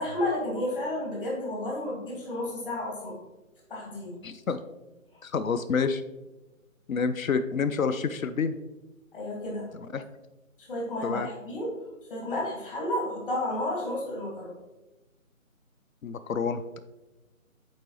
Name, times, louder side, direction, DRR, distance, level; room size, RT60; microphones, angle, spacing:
voice 1, 0.0-3.2 3.7-4.2 5.1-5.2 9.1-9.7 10.6-11.7 12.1-14.6, left 1 dB, 40° left, -3 dB, 2.0 m, -32 dB
voice 2, 4.2-4.6 5.2-6.0 6.9-8.6 9.7-10.0 11.0-11.3 16.0-16.8, left 5 dB, 75° left, 12 dB, 0.5 m, -28 dB
8.7 x 3.9 x 3.0 m, 1.1 s
figure-of-eight pair, 155°, 41 cm